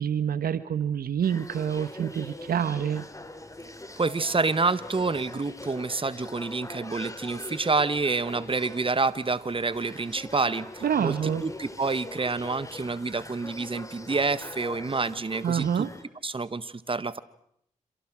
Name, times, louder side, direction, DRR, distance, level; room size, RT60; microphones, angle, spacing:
voice 1, 0.0-3.0 10.8-11.4 15.4-15.9, right 8 dB, 80° right, 14 dB, 1.2 m, -27 dB
sound 1, 1.2-16.0, left 2 dB, 20° left, 3.7 m, -42 dB
voice 2, 4.0-11.1 11.4-15.9 16.2-17.2, right 3 dB, 35° right, 15 dB, 1.5 m, -28 dB
28.0 x 27.5 x 6.3 m, 0.71 s
supercardioid pair, 45°, 15 cm